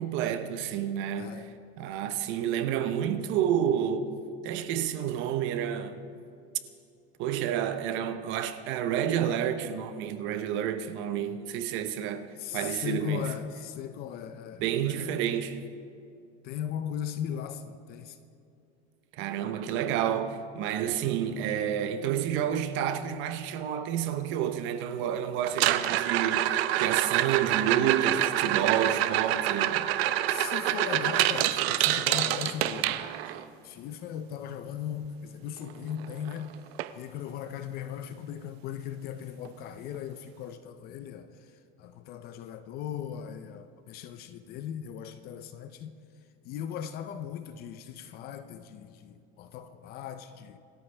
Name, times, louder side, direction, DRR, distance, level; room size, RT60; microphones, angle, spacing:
voice 1, 0.0-1.4 1.8-4.1 4.4-6.0 7.2-12.3 12.5-13.3 14.6-15.6 19.2-29.9, right 9 dB, 40° right, 0.8 m, -29 dB
voice 2, 12.4-15.1 16.4-18.1 30.3-33.1 33.6-36.5 37.0-41.3 41.8-45.9 46.5-50.6, left 9 dB, 30° left, 0.5 m, -38 dB
sound 1, 25.5-33.4 35.7-35.8 36.0-36.4 36.8-36.9 37.5-37.6 39.4-39.5, right 13 dB, 85° right, 0.8 m, -27 dB
27.0 x 13.5 x 3.4 m
supercardioid pair, 170°, 30 cm